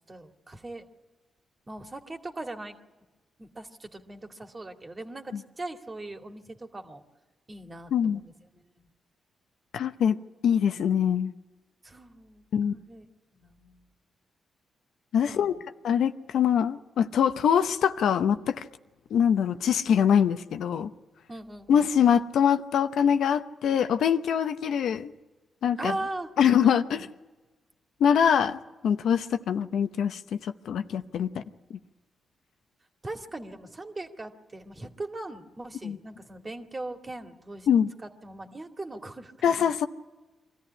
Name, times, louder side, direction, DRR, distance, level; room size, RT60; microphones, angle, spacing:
voice 1, 0.1-0.8 1.7-2.7 3.4-7.0 7.5-8.9 11.8-12.4 12.7-13.0 13.3-13.9 15.3-15.6 21.3-22.0 25.8-27.1 33.0-37.7 38.2-39.3 39.6-39.7, right 2 dB, 30° right, 2.3 m, -40 dB
voice 2, 9.7-11.3 12.5-12.7 15.1-15.5 15.8-18.6 19.1-20.9 21.7-25.1 25.6-26.0 26.4-27.0 28.0-31.3 35.8-36.0 37.7-37.9 39.4-39.9, left 8 dB, 80° left, 0.8 m, -24 dB
24.0 x 14.5 x 9.9 m
supercardioid pair, 60°, 0 cm